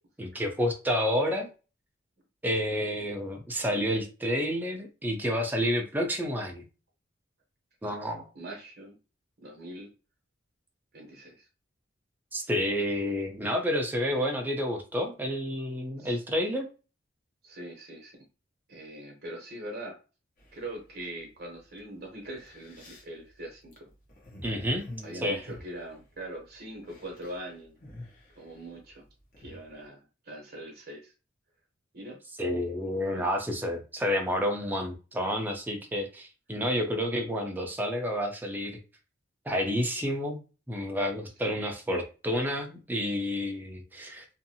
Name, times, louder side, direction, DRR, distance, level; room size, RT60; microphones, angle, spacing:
voice 1, 0.2-1.5 2.4-6.6 7.8-8.2 12.3-16.7 24.4-24.9 25.2-25.4 32.4-38.8 39.5-40.4 40.7-44.2, equal, 10° right, 2 dB, 0.5 m, -29 dB
voice 2, 8.3-9.0 9.4-9.9 10.9-11.5 16.0-16.2 17.4-18.2 18.7-20.0 20.5-23.9 25.0-27.8 28.4-29.0 29.4-31.1 31.9-32.2 33.1-33.3 41.4-41.5, right 1 dB, 55° right, 1 dB, 0.9 m, -42 dB
sound 1, 20.4-21.0 21.8-21.9 22.2-26.5 26.7-27.4 27.6-29.7, left 1 dB, 45° left, 0.9 m, -48 dB
2.7 x 2.5 x 2.7 m, 0.33 s
head